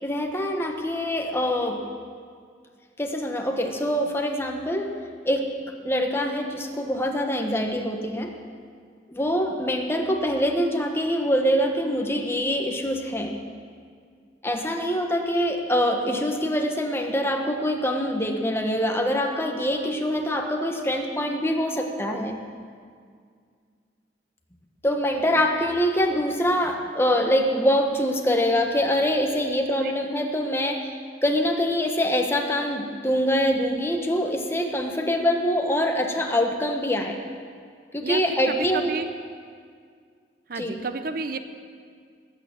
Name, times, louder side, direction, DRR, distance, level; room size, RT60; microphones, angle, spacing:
voice 1, 0.0-1.8 3.0-4.9 5.2-5.5 5.8-8.3 9.1-13.3 14.4-22.4 24.8-31.0 31.2-37.2 37.9-39.0 40.6-40.8, equal, 15° left, 3 dB, 1.3 m, -24 dB
voice 2, 38.0-39.1 40.5-41.6, right 3 dB, 55° right, 9 dB, 0.8 m, -31 dB
20.0 x 8.9 x 7.6 m, 2.1 s
head